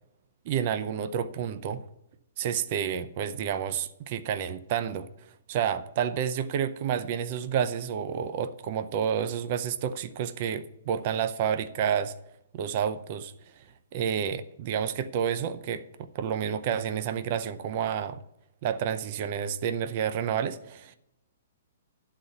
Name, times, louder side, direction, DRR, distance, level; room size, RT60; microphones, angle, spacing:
voice 1, 0.5-1.8 2.4-12.1 12.5-13.3 13.9-15.8 16.1-18.2 18.6-21.0, right 8 dB, 40° right, 11 dB, 0.5 m, -30 dB
11.5 x 4.1 x 7.8 m, 0.83 s
hypercardioid pair, 160°, 0 cm